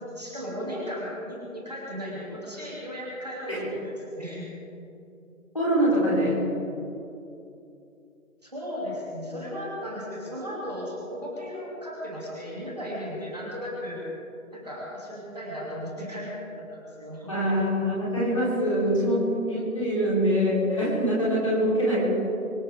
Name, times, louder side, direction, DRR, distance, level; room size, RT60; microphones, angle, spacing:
voice 1, 0.1-4.5 8.4-14.0 14.5-17.3, equal, 30° right, -5 dB, 2.8 m, -36 dB
voice 2, 5.5-6.5 17.3-22.0, equal, 25° left, -7 dB, 3.7 m, -24 dB
24.5 x 15.0 x 3.7 m, 2.7 s
figure-of-eight pair, 175°, 42 cm